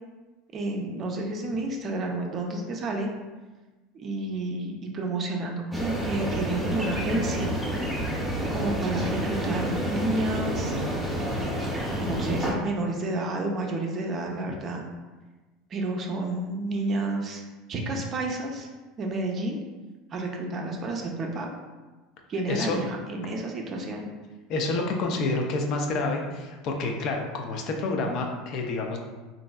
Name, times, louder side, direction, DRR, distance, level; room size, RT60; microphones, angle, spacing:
voice 1, 0.5-3.1 3.9-7.6 8.5-10.8 12.0-14.8 15.7-17.4 17.7-18.7 19.0-19.6 20.1-21.5 22.3-24.1, right 2 dB, 40° right, 2 dB, 0.5 m, -30 dB
sound 1, 5.7-12.5, right 1 dB, ahead, 0.8 m, -29 dB
voice 2, 24.5-29.0, left 3 dB, 55° left, 2 dB, 0.4 m, -28 dB
3.1 x 2.5 x 2.2 m, 1.2 s
supercardioid pair, 105°, 0 cm